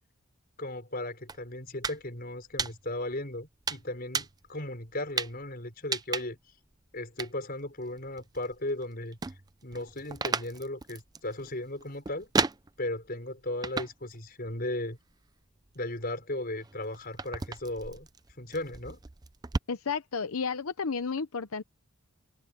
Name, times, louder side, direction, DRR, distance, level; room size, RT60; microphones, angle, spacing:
voice 1, 0.6-6.4 6.9-9.2 9.6-12.3 12.8-15.0 15.7-18.1 18.4-19.0, left 1 dB, 45° left, 5.8 m, -36 dB
sound 1, 1.3-2.0 2.3-3.1 3.7-4.5 5.2-5.4 5.9-6.5 7.2-7.3 7.8-8.8 9.1-13.1 13.6-14.2 14.5-15.1 15.7-19.6, right 4 dB, 20° right, 0.5 m, -34 dB
voice 2, 19.7-21.6, left 5 dB, 85° left, 0.8 m, -32 dB
head